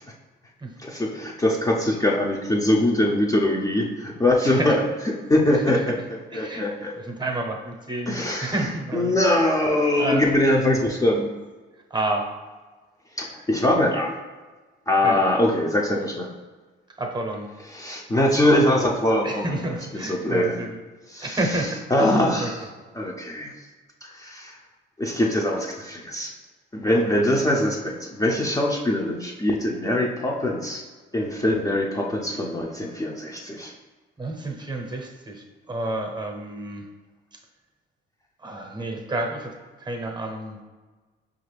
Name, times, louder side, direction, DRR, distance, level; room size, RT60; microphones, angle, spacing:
voice 1, 0.8-4.8 5.3-7.0 8.1-8.5 8.9-11.3 13.2-14.1 14.9-16.3 17.7-19.6 19.9-20.6 21.1-22.7 22.9-23.5 24.0-24.6 25.0-26.3 26.7-30.8 31.1-33.7, left 1 dB, 15° left, -2 dB, 0.5 m, -23 dB
voice 2, 4.4-4.7 5.7-5.8 6.3-6.6 7.0-9.2 10.0-10.2 11.9-12.3 15.0-15.2 17.0-17.5 19.2-20.8 21.2-22.1 22.4-22.5 34.2-36.8 38.4-39.5 39.8-40.6, right 2 dB, 20° right, 2 dB, 0.7 m, -30 dB
5.1 x 2.5 x 3.2 m, 1.3 s
cardioid pair, 90°, 20 cm